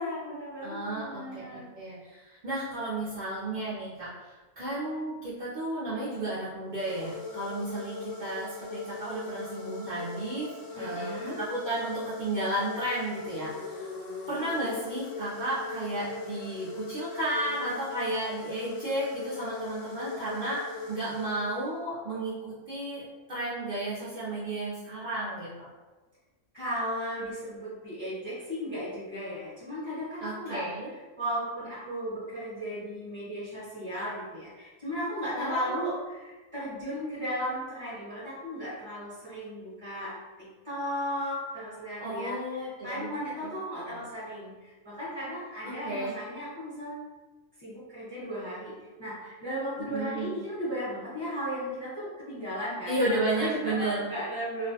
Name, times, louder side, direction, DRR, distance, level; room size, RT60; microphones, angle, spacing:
voice 1, 0.0-1.6 10.7-11.4 26.5-47.0 47.6-48.7 49.0-54.7, equal, 20° right, -11 dB, 0.8 m, -35 dB
voice 2, 0.6-13.9 14.3-25.7 30.2-30.9 35.3-35.9 42.0-43.1 43.8-44.0 45.6-46.2 49.9-50.4 52.9-54.2, right 1 dB, 65° right, -9 dB, 0.4 m, -33 dB
sound 1, 6.7-21.9, left 4 dB, 80° left, 1.0 m, -40 dB
2.4 x 2.1 x 2.7 m, 1.2 s
omnidirectional pair, 1.5 m